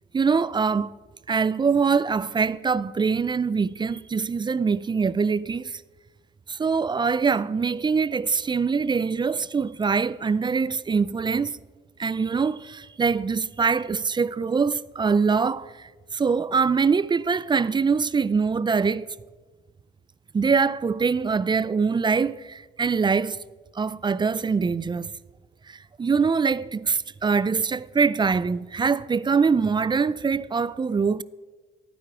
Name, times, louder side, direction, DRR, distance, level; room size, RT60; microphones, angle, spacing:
voice 1, 0.1-0.9 1.3-5.8 6.5-11.6 12.0-19.1 20.3-23.4 23.8-25.1 25.7-31.2, right 5 dB, 25° right, 0.4 m, -23 dB
16.5 x 9.2 x 4.9 m
cardioid pair, 90°, 20 cm